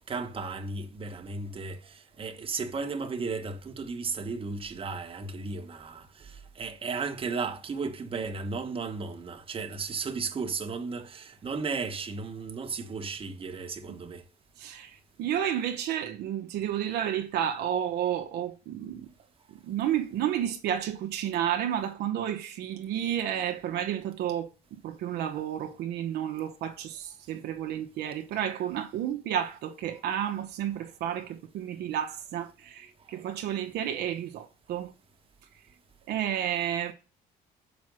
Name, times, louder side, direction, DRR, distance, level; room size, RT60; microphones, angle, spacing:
voice 1, 0.0-14.2 33.1-33.2, right 4 dB, 30° right, 1.3 m, -35 dB
voice 2, 14.6-19.1 19.6-34.9 36.1-36.9, right 10 dB, 75° right, 0.9 m, -31 dB
6.2 x 5.3 x 6.2 m
cardioid pair, 110°, 17 cm